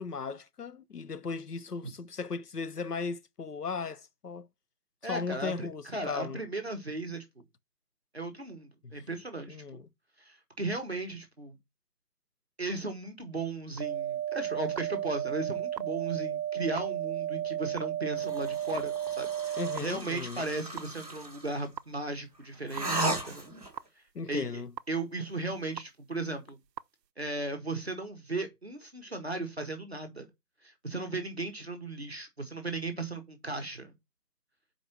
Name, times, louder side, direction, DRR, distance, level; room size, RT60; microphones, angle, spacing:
voice 1, 0.0-4.5 5.0-6.4 8.8-9.0 9.5-9.9 19.6-20.4 24.1-24.7, left 4 dB, 70° left, 0.9 m, -37 dB
voice 2, 5.0-7.2 8.1-9.6 10.2-11.6 12.6-23.5 24.0-24.4 24.9-26.6 27.2-30.3 30.6-33.9, right 2 dB, 40° right, 1.0 m, -36 dB
sound 1, 13.8-19.8 20.8-20.9 21.8-21.9 22.8-22.9 23.8-23.9 24.8-24.9 25.8-25.9 26.8-26.9, right 11 dB, 85° right, 0.6 m, -33 dB
sound 2, 18.2-21.6 22.7-23.8, right 2 dB, 25° right, 1.5 m, -36 dB
5.2 x 4.4 x 5.9 m
figure-of-eight pair, 170°, 49 cm